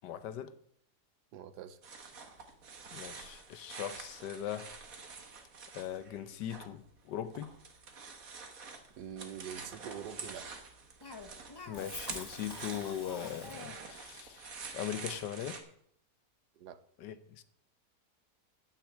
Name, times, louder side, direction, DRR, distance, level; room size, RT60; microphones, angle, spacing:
voice 1, 0.0-0.5 2.9-4.7 5.7-7.5 11.7-15.6 17.0-17.4, left 10 dB, 90° left, 1.5 m, -40 dB
voice 2, 1.3-1.8 9.0-10.5 16.6-16.8, right 9 dB, 75° right, 1.4 m, -45 dB
sound 1, 1.8-6.7 7.0-15.6, right 4 dB, 55° right, 1.8 m, -47 dB
Cough, 11.0-13.9, left 3 dB, 25° left, 0.5 m, -47 dB
9.2 x 7.5 x 8.3 m
omnidirectional pair, 1.8 m